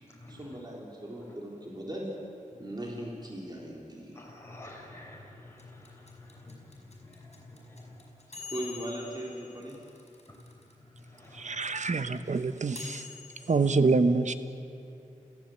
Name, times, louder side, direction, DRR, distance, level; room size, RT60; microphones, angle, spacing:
voice 1, 0.3-2.1 2.5-4.2 8.5-9.8, right 1 dB, 30° right, -2 dB, 3.9 m, -39 dB
voice 2, 4.2-5.8 6.4-6.6 7.5-7.8 11.2-11.5, left 2 dB, 20° left, -2 dB, 4.9 m, -48 dB
sound 1, 5.6-10.7 11.0-11.1 11.2-13.6, left 5 dB, 50° left, 5.3 m, -46 dB
voice 3, 11.3-13.1 13.5-14.3, right 4 dB, 65° right, 11 dB, 1.1 m, -26 dB
29.0 x 15.5 x 8.1 m, 2.6 s
wide cardioid pair, 90°, 14 cm